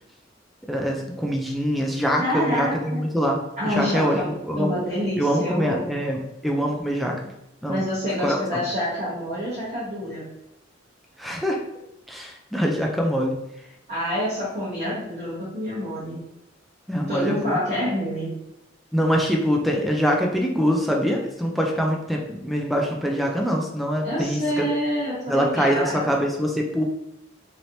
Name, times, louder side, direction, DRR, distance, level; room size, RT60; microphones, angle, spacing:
voice 1, 0.7-4.8 5.2-7.2 7.6-7.8 8.2-8.6 11.2-11.6 12.1-13.3 16.9-17.6 18.9-24.7 25.3-26.8, equal, ahead, 0 dB, 0.3 m, -24 dB
voice 2, 2.2-3.0 3.6-6.0 7.7-10.2 13.9-16.2 17.1-18.3 24.0-26.2, equal, 40° right, -10 dB, 1.1 m, -27 dB
3.1 x 2.9 x 2.7 m, 0.86 s
head